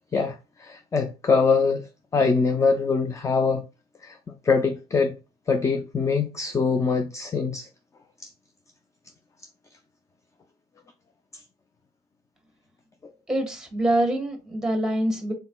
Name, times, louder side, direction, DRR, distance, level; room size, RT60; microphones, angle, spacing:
voice 1, 0.1-1.9 2.1-3.7 4.0-4.2 4.4-5.2 5.5-7.7, left 4 dB, 20° left, 0.4 m, -23 dB
voice 2, 13.3-15.3, right 1 dB, 5° right, 1.4 m, -25 dB
4.0 x 3.9 x 2.3 m
cardioid pair, 110°, 17 cm